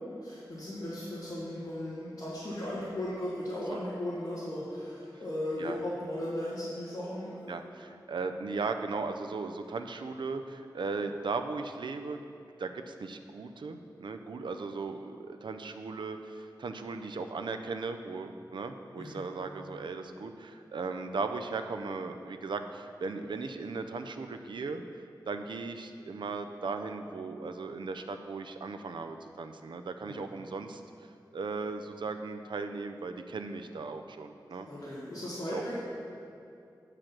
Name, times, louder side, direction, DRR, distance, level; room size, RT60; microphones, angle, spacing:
voice 1, 0.0-7.5 19.0-19.2 30.0-30.2 34.7-35.8, left 1 dB, 45° left, -10 dB, 1.9 m, -36 dB
voice 2, 7.5-12.2 12.6-24.8 25.3-30.8 31.3-34.7 35.5-35.6, right 4 dB, 85° right, 7 dB, 0.5 m, -37 dB
8.8 x 4.9 x 5.9 m, 2.5 s
wide cardioid pair, 95°, 8 cm